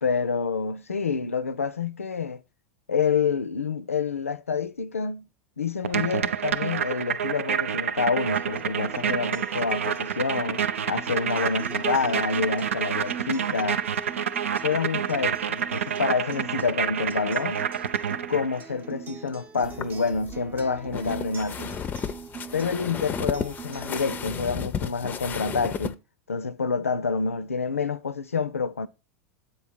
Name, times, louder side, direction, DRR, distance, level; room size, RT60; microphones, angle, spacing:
voice 1, 0.0-2.4 2.9-5.3 5.6-10.6 10.9-13.8 14.6-17.7 18.3-21.8 22.5-26.0 26.3-28.9, left 5 dB, 85° left, 0.5 m, -28 dB
sound 1, 5.8-18.6, right 8 dB, 75° right, 0.4 m, -28 dB
Acoustic guitar, 8.3-24.3, right 6 dB, 25° right, 0.7 m, -42 dB
sound 2, 19.6-25.9, left 7 dB, 25° left, 0.5 m, -34 dB
8.0 x 4.3 x 4.6 m
figure-of-eight pair, 90°, 7 cm